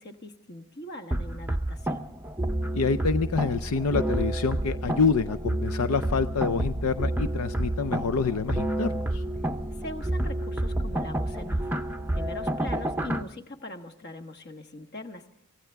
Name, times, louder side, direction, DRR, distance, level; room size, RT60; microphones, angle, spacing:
voice 1, 0.0-2.0 9.7-11.7 12.1-15.3, left 1 dB, 45° left, 7 dB, 1.3 m, -41 dB
sound 1, 1.1-13.2, right 1 dB, 10° right, 0.6 m, -29 dB
voice 2, 2.7-9.2, left 5 dB, 80° left, 12 dB, 0.6 m, -27 dB
25.0 x 15.5 x 3.5 m, 0.77 s
head